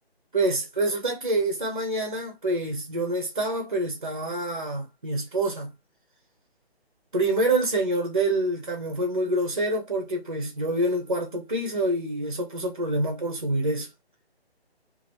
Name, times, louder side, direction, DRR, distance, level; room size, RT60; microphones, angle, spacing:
voice 1, 0.3-5.7 7.1-13.9, right 1 dB, 35° right, 0.6 m, -26 dB
2.8 x 2.4 x 3.2 m
figure-of-eight pair, 150°, 32 cm